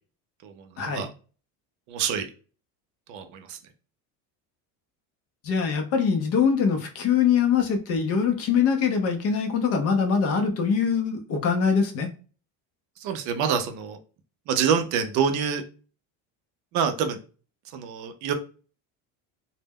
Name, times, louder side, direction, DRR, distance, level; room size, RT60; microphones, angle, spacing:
voice 1, 0.4-1.1 1.9-2.3 3.1-3.6 13.0-14.0 14.5-15.6 16.7-17.2 17.7-18.3, right 7 dB, 55° right, 7 dB, 0.4 m, -26 dB
voice 2, 5.4-12.1, left 6 dB, 40° left, 5 dB, 0.5 m, -23 dB
2.1 x 2.1 x 3.4 m, 0.37 s
cardioid pair, 170°, 36 cm